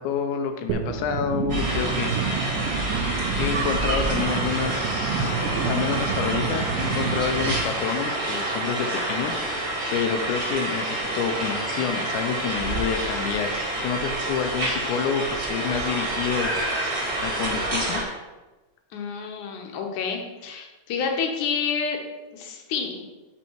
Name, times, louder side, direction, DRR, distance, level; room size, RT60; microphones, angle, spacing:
voice 1, 0.0-2.1 3.4-9.3 9.9-16.5 17.2-18.0, left 7 dB, 85° left, 5 dB, 1.7 m, -28 dB
sound 1, 0.7-7.6, right 6 dB, 80° right, 2.4 m, -29 dB
sound 2, 1.5-18.0, right 1 dB, 35° right, 1.7 m, -28 dB
voice 2, 18.9-22.0 22.3-23.1, left 6 dB, 70° left, 3 dB, 2.1 m, -29 dB
7.1 x 5.5 x 4.5 m, 1.1 s
omnidirectional pair, 4.2 m